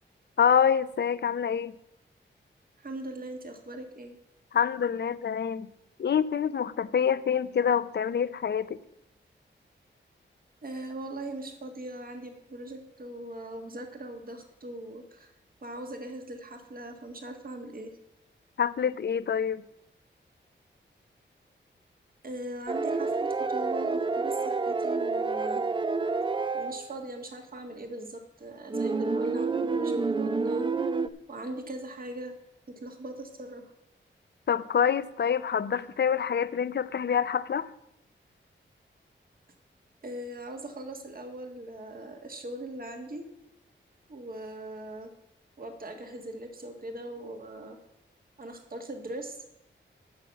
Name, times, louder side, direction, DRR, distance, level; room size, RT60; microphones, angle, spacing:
voice 1, 0.4-1.7 4.5-5.7 6.0-8.8 18.6-19.6 34.5-37.7, left 7 dB, 60° left, 15 dB, 0.6 m, -26 dB
voice 2, 2.8-4.2 10.6-15.3 15.6-17.9 22.2-25.6 26.5-30.7 31.3-32.3 32.7-33.7 40.0-43.2 44.1-45.1 45.6-47.8 48.4-49.4, right 1 dB, 45° right, 5 dB, 1.6 m, -40 dB
sound 1, 22.7-26.9 28.7-31.1, right 4 dB, 25° right, 0.5 m, -28 dB
9.4 x 6.1 x 8.3 m, 0.81 s
wide cardioid pair, 110°, 20 cm